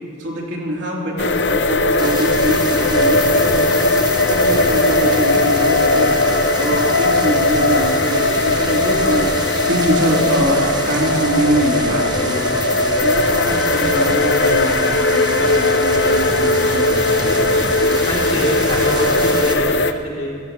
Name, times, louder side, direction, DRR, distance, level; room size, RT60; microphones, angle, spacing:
voice 1, 0.2-3.9 4.3-6.1 6.5-12.5 13.0-17.3, right 1 dB, 70° right, -4 dB, 3.3 m, -23 dB
sound 1, 1.2-19.9, left 2 dB, 60° left, 0.7 m, -18 dB
sound 2, 2.0-19.5, right 2 dB, 20° right, 1.0 m, -28 dB
voice 2, 18.0-20.4, left 1 dB, 30° left, -5 dB, 2.9 m, -25 dB
29.0 x 16.0 x 3.1 m, 2.2 s
head